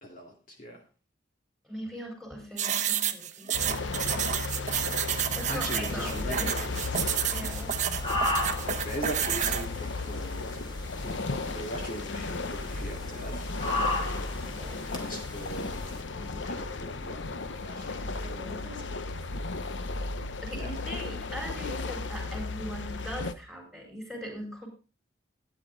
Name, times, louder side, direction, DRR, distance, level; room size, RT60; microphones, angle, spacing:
voice 1, 0.0-0.8 5.1-7.1 8.8-10.5 11.0-11.1 11.5-13.5 14.9-15.8 16.2-17.2 17.6-18.7 20.5-20.8, equal, 45° left, 0 dB, 2.5 m, -40 dB
voice 2, 1.6-4.2 5.3-6.5 7.3-7.8 14.4-14.9 18.2-18.8 20.4-24.7, equal, ahead, 0 dB, 4.4 m, -40 dB
sound 1, 2.6-9.7, right 9 dB, 40° right, 0.9 m, -30 dB
sound 2, 3.5-23.3, left 3 dB, 75° left, 0.8 m, -35 dB
sound 3, 5.1-16.0, left 2 dB, 25° left, 2.4 m, -37 dB
12.5 x 9.9 x 3.9 m, 0.33 s
head